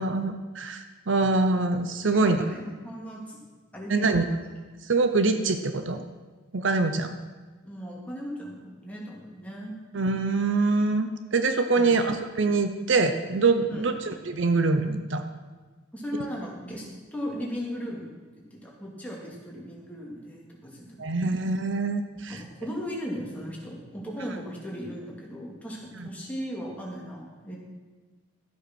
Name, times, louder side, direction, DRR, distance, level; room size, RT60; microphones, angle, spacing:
voice 1, 0.0-2.4 3.9-4.2 4.9-6.0 6.5-7.1 9.9-13.9 14.3-15.2 21.0-22.4 26.0-26.1, right 3 dB, 60° right, 8 dB, 0.8 m, -24 dB
voice 2, 2.1-3.4 3.7-4.4 7.6-9.7 11.8-11.9 13.7-13.8 15.9-18.1 18.5-21.0 22.3-27.6, equal, 5° left, -4 dB, 2.6 m, -37 dB
13.0 x 8.1 x 6.2 m, 1.4 s
head